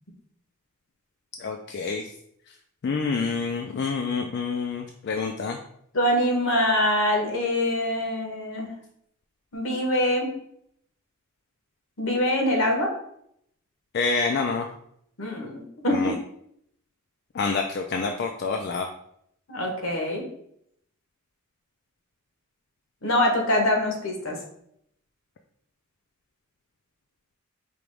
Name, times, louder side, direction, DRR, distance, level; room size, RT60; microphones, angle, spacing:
voice 1, 1.4-2.1 2.8-5.6 13.9-14.7 15.9-16.1 17.3-18.9, left 4 dB, 50° left, 4 dB, 0.3 m, -27 dB
voice 2, 5.9-8.7 9.5-10.3 12.0-12.9 15.2-16.1 19.5-20.3 23.0-24.4, left 1 dB, 70° left, 2 dB, 1.1 m, -24 dB
4.9 x 3.0 x 3.3 m, 0.72 s
head